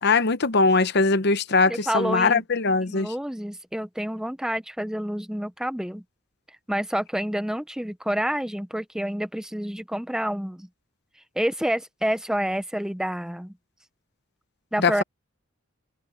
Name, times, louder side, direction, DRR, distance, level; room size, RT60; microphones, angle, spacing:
voice 1, 0.0-3.1 14.8-15.0, left 3 dB, 55° left, 0.9 m, -21 dB
voice 2, 1.7-2.4 2.9-6.0 6.7-10.7 11.4-13.5 14.7-15.0, equal, 5° right, 0.7 m, -28 dB
head